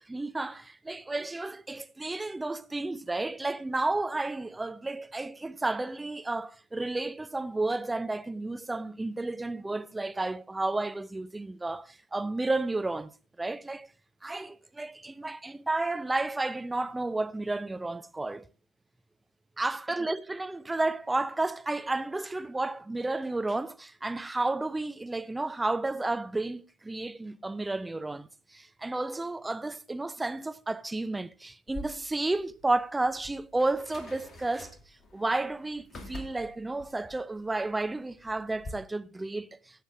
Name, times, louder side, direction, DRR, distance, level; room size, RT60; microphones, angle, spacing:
voice 1, 0.1-13.9 14.2-18.5 19.6-34.8 35.1-39.8, right 2 dB, 10° right, 0.6 m, -32 dB
sound 1, 31.7-38.7, left 2 dB, 25° left, 2.3 m, -47 dB
17.0 x 7.3 x 3.6 m
figure-of-eight pair, 75°, 0 cm